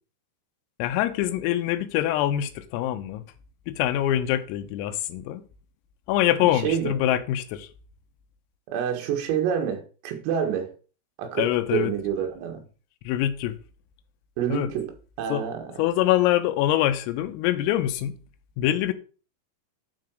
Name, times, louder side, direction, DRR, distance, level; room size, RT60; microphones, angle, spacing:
voice 1, 0.8-3.3 3.7-5.4 6.1-7.7 11.4-11.9 13.1-13.6 14.5-14.7 15.3-15.4 15.8-18.2 18.6-18.9, left 13 dB, 85° left, 3.5 m, -24 dB
voice 2, 8.7-10.7 11.2-12.6 14.4-14.9 15.2-15.7, right 8 dB, 80° right, 4.4 m, -27 dB
11.0 x 4.9 x 6.3 m
omnidirectional pair, 5.9 m